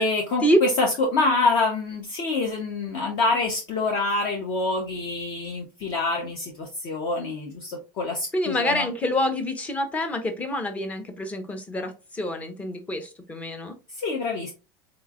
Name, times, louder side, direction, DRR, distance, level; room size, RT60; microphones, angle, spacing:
voice 1, 0.0-8.9 14.0-14.5, left 3 dB, 45° left, 1 dB, 0.9 m, -26 dB
voice 2, 8.3-13.7, equal, 15° left, 7 dB, 0.7 m, -26 dB
4.0 x 3.1 x 2.4 m, 0.28 s
supercardioid pair, 160°, 11 cm